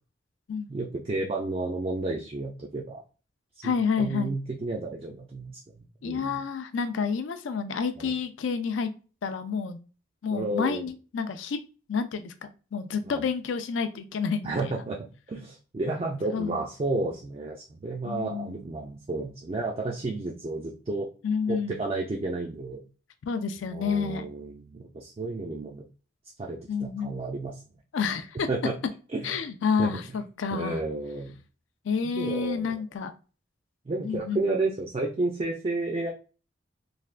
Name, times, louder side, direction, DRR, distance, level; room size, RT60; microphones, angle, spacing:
voice 1, 0.7-3.0 3.6-5.6 6.0-6.4 8.0-8.1 10.3-10.9 13.1-13.2 14.4-21.1 21.5-22.8 23.7-25.8 26.4-27.5 28.5-28.8 29.1-29.4 29.8-29.9 30.5-31.3 32.0-32.7 33.9-36.1, right 2 dB, 30° right, 0 dB, 0.3 m, -32 dB
voice 2, 3.6-4.3 6.0-8.9 9.2-9.8 10.2-11.6 11.9-14.8 16.3-16.7 18.0-18.6 21.2-21.8 23.3-24.3 26.7-27.2 27.9-28.5 29.2-30.8 31.8-33.1 34.0-34.4, left 5 dB, 85° left, 9 dB, 0.4 m, -29 dB
3.3 x 2.1 x 2.4 m, 0.35 s
head